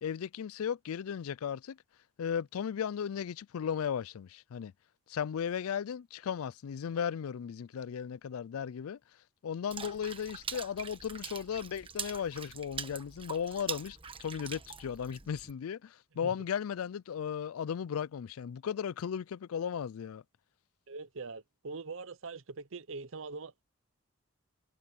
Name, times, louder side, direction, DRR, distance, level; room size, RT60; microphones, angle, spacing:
voice 1, 0.0-1.8 2.2-4.7 5.1-9.0 9.4-20.2, left 8 dB, 75° left, 0.4 m, -36 dB
Water / Splash splatter, 9.7-15.5, right 6 dB, 25° right, 1.2 m, -43 dB
voice 2, 20.9-23.6, right 4 dB, 65° right, 0.8 m, -43 dB
head